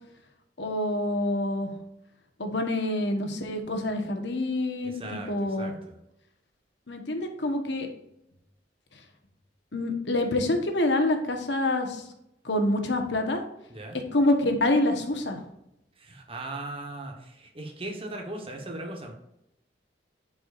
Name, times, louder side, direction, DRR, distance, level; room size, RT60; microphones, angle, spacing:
voice 1, 0.6-1.7 2.4-5.7 6.9-7.9 9.7-12.0 12.4-13.4 14.1-15.4, left 1 dB, 80° left, 5 dB, 1.2 m, -26 dB
voice 2, 4.8-6.0 13.7-14.0 16.0-19.1, right 2 dB, 30° right, 2 dB, 1.2 m, -38 dB
11.0 x 4.8 x 2.6 m, 0.83 s
head